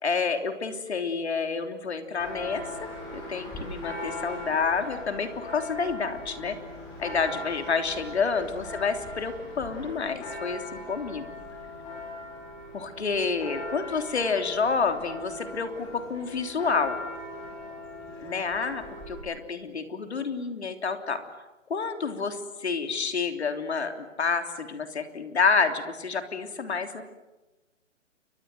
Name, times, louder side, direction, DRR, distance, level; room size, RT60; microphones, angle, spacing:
voice 1, 0.0-2.6 3.1-6.6 7.0-11.3 12.7-17.0 18.2-21.2 21.7-27.0, left 5 dB, 55° left, 7 dB, 3.4 m, -29 dB
Church bell, 2.2-19.2, left 2 dB, 10° left, 4.9 m, -39 dB
29.5 x 24.0 x 7.9 m, 1.1 s
hypercardioid pair, 175°, 38 cm